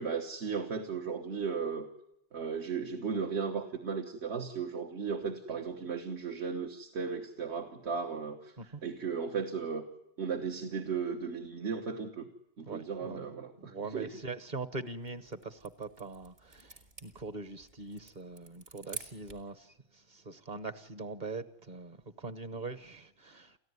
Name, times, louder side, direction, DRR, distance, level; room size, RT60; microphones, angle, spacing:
voice 1, 0.0-1.9 2.3-9.8 10.2-12.3 12.6-14.1, right 5 dB, 80° right, 1.6 m, -36 dB
voice 2, 12.7-23.6, right 3 dB, 45° right, 1.1 m, -42 dB
sound 1, 14.9-19.5, right 2 dB, 65° right, 3.0 m, -49 dB
29.5 x 14.5 x 9.5 m
omnidirectional pair, 1.1 m